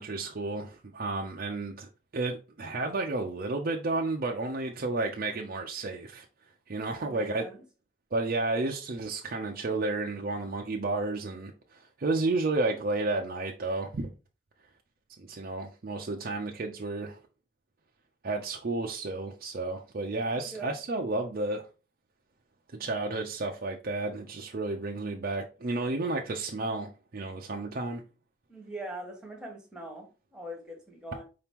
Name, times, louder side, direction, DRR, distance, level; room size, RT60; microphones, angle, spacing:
voice 1, 0.0-6.2 6.7-7.5 8.1-14.1 15.2-17.2 18.2-21.6 22.8-28.0, right 2 dB, 45° right, 0.5 m, -32 dB
voice 2, 7.0-7.6 20.3-20.7 28.5-31.2, right 1 dB, 5° right, 1.2 m, -42 dB
4.9 x 2.9 x 3.5 m
head